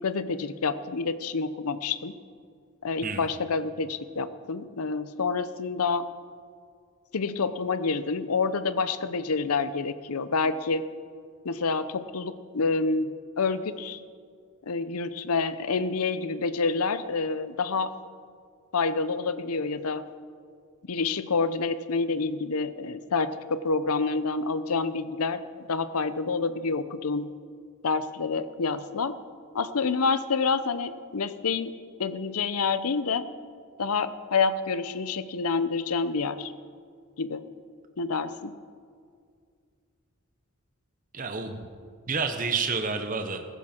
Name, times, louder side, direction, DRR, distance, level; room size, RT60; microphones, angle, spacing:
voice 1, 0.0-2.1 2.8-6.1 7.1-10.9 11.4-14.0 14.7-17.9 18.7-20.0 20.8-27.3 27.8-29.1 29.5-31.7 32.0-33.2 33.8-36.5 37.2-37.4 38.0-38.5, left 4 dB, 85° left, 13 dB, 0.7 m, -28 dB
voice 2, 41.1-41.6 42.1-43.4, right 4 dB, 40° right, 6 dB, 0.9 m, -29 dB
15.5 x 15.0 x 4.4 m, 2.2 s
head